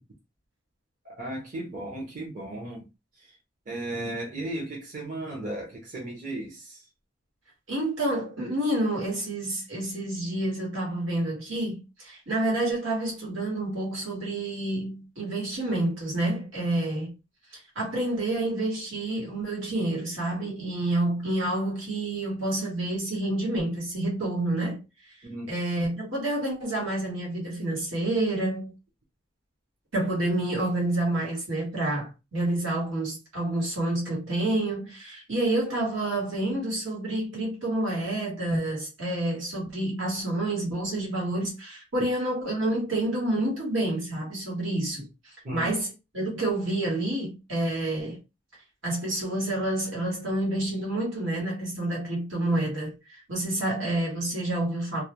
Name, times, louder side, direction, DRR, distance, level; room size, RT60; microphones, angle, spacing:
voice 1, 1.0-2.8 3.2-3.3 3.7-6.9 25.2-25.5 45.4-45.7, right 1 dB, 40° right, 0.7 m, -35 dB
voice 2, 7.7-17.1 17.5-24.8 25.5-28.7 29.9-48.2 48.8-55.0, right 1 dB, 75° right, 1.3 m, -28 dB
2.3 x 2.1 x 2.9 m
head